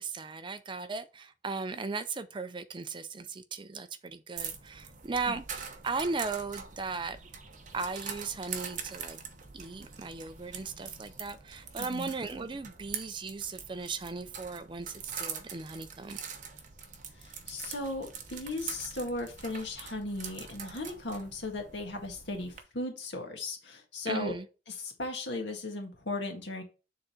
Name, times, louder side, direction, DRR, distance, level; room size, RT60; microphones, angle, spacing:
voice 1, 0.0-7.2 7.7-9.2 9.5-16.2 24.1-24.5, right 4 dB, 25° right, 0.4 m, -37 dB
sound 1, 4.4-22.6, right 6 dB, 45° right, 0.9 m, -44 dB
voice 2, 11.8-12.1 17.2-24.3 24.8-26.6, left 2 dB, 90° left, 1.8 m, -37 dB
6.8 x 3.8 x 4.3 m
head